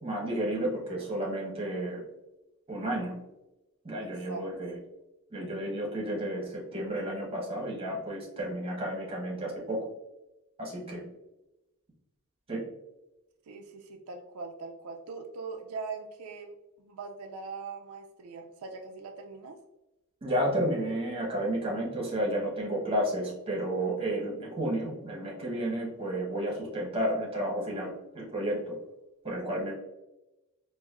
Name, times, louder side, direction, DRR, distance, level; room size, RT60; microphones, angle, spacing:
voice 1, 0.0-2.0 2.7-3.1 3.8-4.8 5.3-9.8 10.6-11.0 12.5-12.6 20.2-28.7 29.2-29.7, right 1 dB, 25° right, -3 dB, 1.0 m, -32 dB
voice 2, 4.0-4.4 13.5-16.5 16.9-19.6, right 4 dB, 80° right, 3 dB, 0.4 m, -41 dB
4.0 x 2.5 x 2.4 m, 0.96 s
head